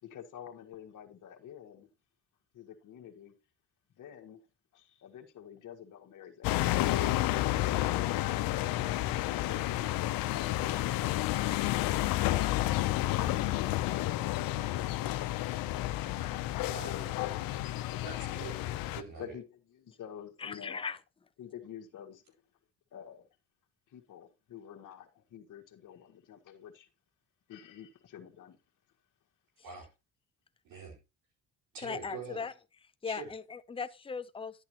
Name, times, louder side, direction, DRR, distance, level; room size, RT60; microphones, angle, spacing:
voice 1, 0.0-1.9 2.5-3.3 4.0-4.4 4.7-6.9 9.1-9.7 10.0-12.0 12.4-15.1 16.7-17.3 19.2-20.8 21.4-22.3 22.9-23.3 23.9-26.9 27.5-28.6, left 9 dB, 65° left, 1.6 m, -49 dB
sound 1, 6.4-19.0, left 15 dB, 85° left, 0.8 m, -31 dB
voice 2, 16.6-17.0 18.0-19.4 29.6-29.9 30.6-31.0 31.7-32.4 33.0-33.3, right 4 dB, 80° right, 4.6 m, -44 dB
voice 3, 20.4-21.0 31.8-32.5 33.0-34.6, left 5 dB, 15° left, 0.6 m, -38 dB
11.0 x 8.2 x 3.0 m
supercardioid pair, 80°, 34 cm